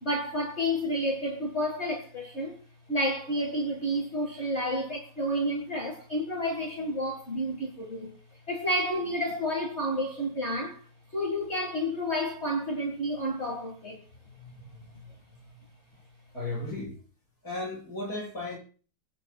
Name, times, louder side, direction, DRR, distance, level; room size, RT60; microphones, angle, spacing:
voice 1, 0.0-2.6 2.9-8.1 8.5-10.8 11.1-14.0, equal, 35° left, 2.2 m, -30 dB
voice 2, 14.3-15.5 16.3-17.0 17.4-18.6, left 2 dB, 55° left, 8.2 m, -37 dB
23.5 x 9.7 x 2.4 m
omnidirectional pair, 1.9 m